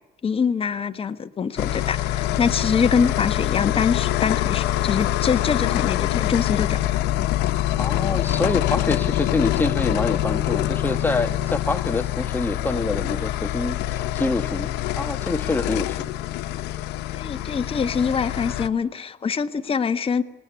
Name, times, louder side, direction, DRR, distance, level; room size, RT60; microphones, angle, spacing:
voice 1, 0.2-6.8 17.1-20.2, left 6 dB, 35° left, 8 dB, 1.3 m, -24 dB
sound 1, 1.6-18.7, left 14 dB, 85° left, 1.1 m, -25 dB
voice 2, 7.8-14.7 15.0-16.1, left 2 dB, 10° left, 8 dB, 1.4 m, -26 dB
26.5 x 19.5 x 9.6 m, 1.1 s
cardioid pair, 110°, 17 cm